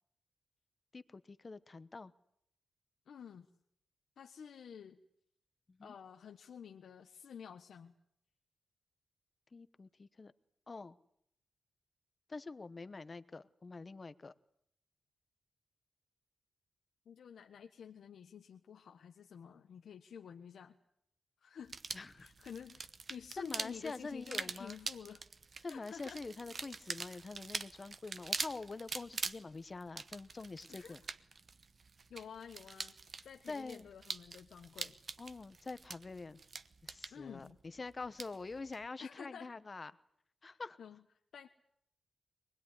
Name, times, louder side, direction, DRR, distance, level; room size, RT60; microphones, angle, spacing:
voice 1, 0.9-2.1 5.7-5.9 9.5-10.3 10.7-11.0 12.3-14.3 21.9-22.3 23.4-24.8 25.6-31.0 33.5-33.9 35.2-36.4 36.8-39.9 40.4-40.8, left 3 dB, 30° left, 14 dB, 1.0 m, -46 dB
voice 2, 3.1-3.5 4.2-5.0 5.8-7.9 17.0-20.8 21.4-21.8 22.2-25.2 25.7-26.2 30.7-31.0 32.1-32.9 33.2-35.0 37.1-37.6 39.0-39.5 40.4-41.0 41.3-41.5, left 7 dB, 80° left, 5 dB, 1.3 m, -51 dB
sound 1, 21.7-38.9, right 4 dB, 40° right, 1.0 m, -45 dB
24.0 x 20.0 x 9.9 m, 0.72 s
wide cardioid pair, 160°, 0 cm